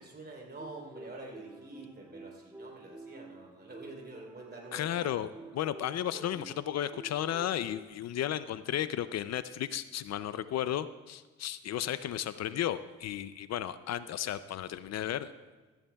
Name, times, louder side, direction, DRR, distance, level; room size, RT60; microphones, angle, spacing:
voice 1, 0.0-4.9, right 2 dB, 35° right, -1 dB, 3.6 m, -47 dB
sound 1, 0.6-7.8, right 2 dB, 10° right, 0.5 m, -50 dB
voice 2, 4.7-15.3, left 11 dB, 60° left, 13 dB, 0.5 m, -34 dB
15.5 x 14.0 x 2.3 m, 1.3 s
cardioid pair, 90°, 30 cm